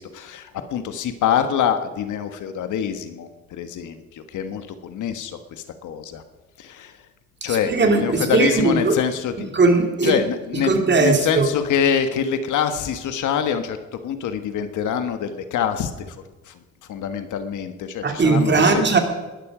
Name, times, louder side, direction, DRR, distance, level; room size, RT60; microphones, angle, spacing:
voice 1, 0.0-6.2 6.6-7.0 7.4-9.5 10.0-13.8 14.0-16.1 16.5-16.6 16.9-18.9, left 8 dB, 80° left, 9 dB, 1.5 m, -25 dB
voice 2, 7.4-8.9 9.5-10.2 10.6-11.5 18.0-19.0, right 3 dB, 35° right, 5 dB, 2.7 m, -18 dB
20.0 x 12.5 x 5.0 m, 1.2 s
cardioid pair, 90°, 30 cm